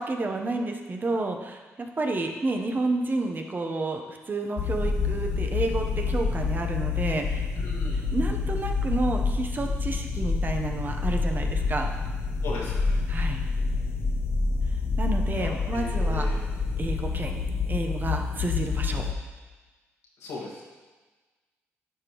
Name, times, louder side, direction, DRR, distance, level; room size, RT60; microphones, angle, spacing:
voice 1, 0.0-7.5 7.9-11.9 13.1-13.4 15.0-16.3 16.8-17.4 17.7-19.0, right 2 dB, 35° right, 3 dB, 0.9 m, -30 dB
sound 1, 4.6-19.1, left 4 dB, 50° left, 0.6 m, -27 dB
voice 2, 7.5-8.1 12.4-13.0 15.4-16.4 18.8-19.0 20.2-20.6, left 3 dB, 85° left, -4 dB, 1.8 m, -38 dB
10.0 x 5.2 x 3.1 m, 1.3 s
cardioid pair, 65°, 5 cm